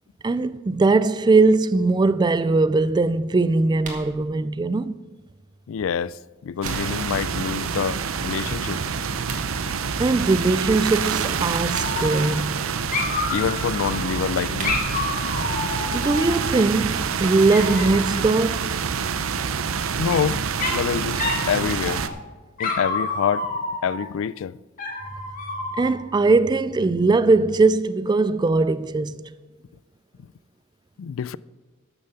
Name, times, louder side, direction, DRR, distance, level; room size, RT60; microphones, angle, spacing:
voice 1, 0.2-5.0 10.0-12.7 15.9-18.8 25.8-29.3, right 3 dB, 20° right, 0.3 m, -20 dB
sound 1, 3.8-4.1 6.1-7.1 9.1-9.5 11.5-12.2 14.2-15.1, right 3 dB, 40° right, 2.1 m, -38 dB
voice 2, 5.7-8.8 13.3-14.8 20.0-20.4 20.7-22.0 22.6-23.5 23.8-24.6 31.0-31.4, left 7 dB, 70° left, 0.3 m, -26 dB
sound 2, 6.6-22.1, right 6 dB, 75° right, 0.6 m, -27 dB
Dog, 11.7-12.6 12.9-14.1 14.6-16.7 17.5-18.2 19.6-20.2 20.6-20.9 21.2-21.5 21.8-22.2 22.6-24.1 24.8-26.0, left 3 dB, 40° left, 2.0 m, -29 dB
12.0 x 6.8 x 6.9 m
head